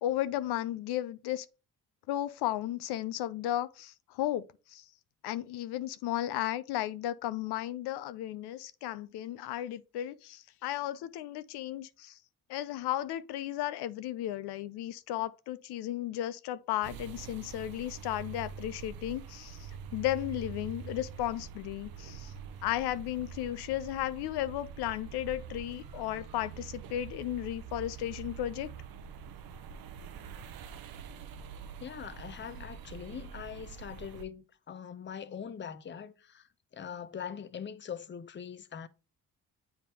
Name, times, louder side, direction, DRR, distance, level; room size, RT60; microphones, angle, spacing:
voice 1, 0.0-1.5 2.1-4.8 5.2-12.2 12.5-22.3 22.6-28.7, left 13 dB, 75° left, 0.5 m, -34 dB
sound 1, 16.8-34.2, right 7 dB, 60° right, 0.7 m, -45 dB
voice 2, 31.8-38.9, left 8 dB, 30° left, 0.6 m, -42 dB
7.5 x 3.6 x 4.2 m
supercardioid pair, 65°, 39 cm